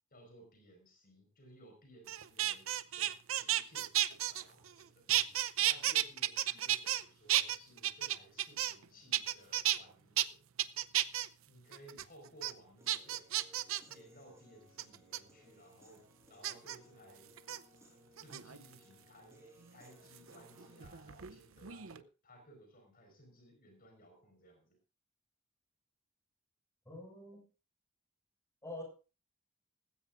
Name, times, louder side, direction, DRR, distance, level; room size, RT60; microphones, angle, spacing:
voice 1, 0.1-3.9 4.3-5.1 5.6-10.4 11.5-13.3 13.9-16.0 16.3-17.4 18.2-19.4 19.7-24.8, right 1 dB, 45° left, 3 dB, 5.0 m, -59 dB
sound 1, 2.1-4.8 5.1-7.0 7.3-8.8 9.1-9.8 10.2-10.3 10.6-11.3 11.7-12.0 12.4-12.5 12.9-13.9 14.8-15.2 16.4-16.8 17.4-17.6 18.2-18.7 20.2-21.4 21.6-22.0, right 13 dB, 70° right, 0.7 m, -33 dB
Human voice / Piano, 12.8-20.8, equal, 15° right, 5.8 m, -63 dB
voice 2, 26.8-27.4 28.6-28.8, left 1 dB, 15° left, 2 dB, 6.7 m, -46 dB
18.5 x 16.0 x 2.6 m, 0.33 s
head